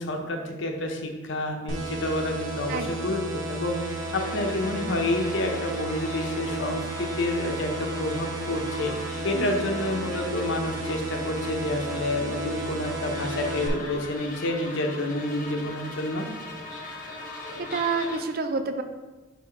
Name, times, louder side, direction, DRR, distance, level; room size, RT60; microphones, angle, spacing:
voice 1, 0.0-16.3, left 1 dB, 65° left, 3 dB, 0.9 m, -29 dB
sound 1, 1.7-13.7, right 2 dB, 80° right, 1.0 m, -33 dB
Electric Wasps, 3.7-18.2, left 2 dB, 45° left, 1.1 m, -40 dB
voice 2, 17.6-18.8, right 4 dB, 50° right, 8 dB, 0.5 m, -28 dB
5.8 x 3.6 x 5.0 m, 1.2 s
head